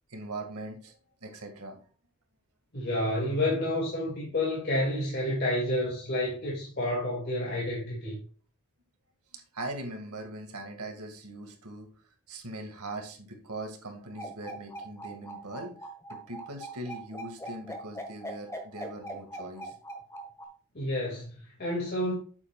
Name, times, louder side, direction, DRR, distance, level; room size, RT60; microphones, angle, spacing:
voice 1, 0.1-0.9 1.2-1.8 9.5-11.9 12.3-15.7 16.1-19.7, right 2 dB, 80° right, 4 dB, 2.1 m, -40 dB
voice 2, 2.7-8.2 20.7-22.1, left 1 dB, 45° left, -4 dB, 2.4 m, -29 dB
sound 1, 14.2-20.5, right 1 dB, 15° left, 1.3 m, -40 dB
8.3 x 7.6 x 2.4 m, 0.41 s
head